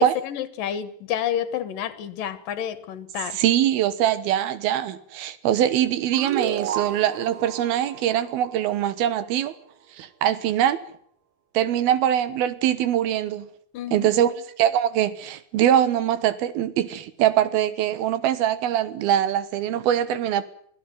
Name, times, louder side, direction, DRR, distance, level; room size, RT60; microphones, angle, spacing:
voice 1, 0.0-3.4 13.7-14.4, left 9 dB, 70° left, 3.0 m, -29 dB
voice 2, 3.3-9.5 10.0-10.8 11.5-13.5 13.9-14.3 14.6-20.4, right 11 dB, 85° right, 3.2 m, -22 dB
sound 1, 6.1-9.4, right 9 dB, 65° right, 2.6 m, -33 dB
24.0 x 15.0 x 9.3 m
omnidirectional pair, 4.3 m